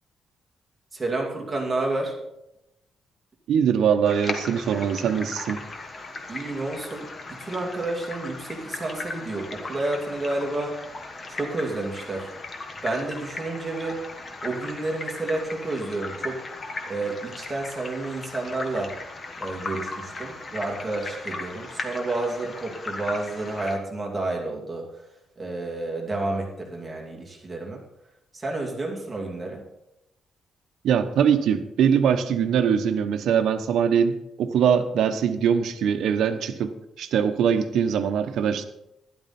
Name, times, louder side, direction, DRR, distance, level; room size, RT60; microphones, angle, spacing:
voice 1, 0.9-2.2 6.3-10.8 11.3-12.3 12.8-14.0 14.4-16.4 16.9-18.9 19.4-25.1 25.4-27.8 28.3-29.6, right 2 dB, 15° right, -1 dB, 2.6 m, -30 dB
voice 2, 3.5-5.6 30.8-38.6, right 7 dB, 75° right, 8 dB, 1.0 m, -22 dB
sound 1, 4.0-23.8, left 3 dB, 30° left, 1.4 m, -37 dB
12.0 x 11.5 x 4.3 m, 0.86 s
cardioid pair, 145°, 0 cm